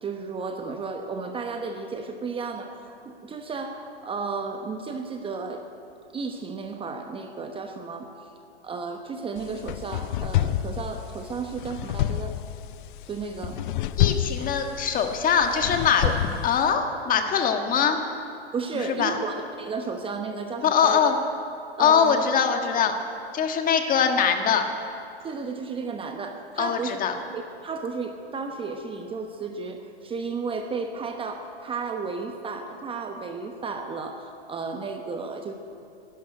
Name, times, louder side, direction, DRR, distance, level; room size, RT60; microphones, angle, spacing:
voice 1, 0.0-5.7 6.1-8.3 8.6-12.3 13.1-13.6 16.0-16.2 18.5-21.2 21.8-22.3 25.2-27.0 27.3-35.5, right 4 dB, 15° right, 5 dB, 1.0 m, -33 dB
sound 1, 9.4-16.7, left 13 dB, 50° left, 0.5 m, -29 dB
voice 2, 14.0-16.0 16.4-18.0 18.7-19.1 20.6-21.2 21.8-22.9 23.3-24.6 26.6-27.1, left 7 dB, 25° left, 5 dB, 1.5 m, -22 dB
12.5 x 11.5 x 9.7 m, 2.6 s
hypercardioid pair, 115°, 32 cm